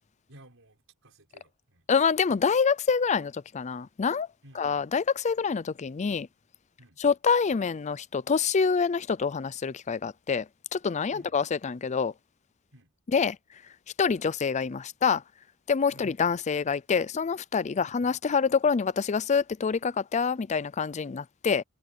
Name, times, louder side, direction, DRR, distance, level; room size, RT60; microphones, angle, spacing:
voice 1, 0.3-1.9 4.4-4.8 6.8-7.0 11.1-11.4 12.7-12.9 15.9-16.1 17.8-17.9, right 1 dB, 65° right, 6.0 m, -55 dB
voice 2, 1.9-4.3 4.6-6.3 7.0-10.5 10.7-12.1 13.1-13.4 14.0-15.2 15.7-21.6, left 5 dB, 35° left, 0.4 m, -26 dB
head